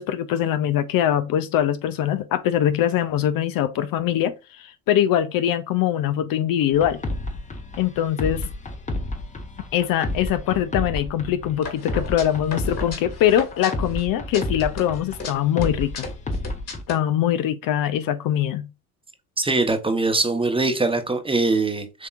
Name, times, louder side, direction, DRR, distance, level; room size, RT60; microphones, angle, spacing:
voice 1, 0.0-7.0 7.8-8.5 9.7-16.1 16.9-18.7, left 11 dB, 50° left, 0.6 m, -22 dB
sound 1, 6.7-16.8, left 1 dB, 15° left, 0.9 m, -31 dB
sound 2, 11.6-14.0 14.3-15.3 15.6-17.0, left 4 dB, 35° left, 1.9 m, -35 dB
voice 2, 19.4-22.1, right 3 dB, 10° right, 1.0 m, -22 dB
7.2 x 2.9 x 2.5 m
supercardioid pair, 85°, 43 cm